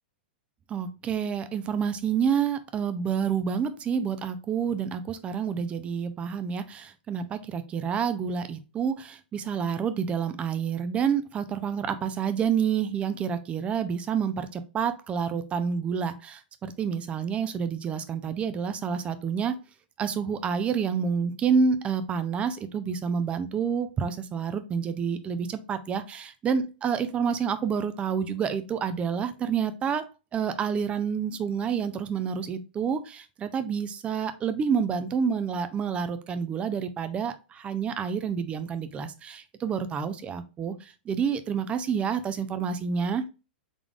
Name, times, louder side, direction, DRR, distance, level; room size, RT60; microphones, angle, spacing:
voice 1, 0.7-19.6 20.0-30.0 30.3-43.2, right 6 dB, 20° right, 11 dB, 0.5 m, -28 dB
3.7 x 3.5 x 2.4 m, 0.30 s
hypercardioid pair, 130°, 6 cm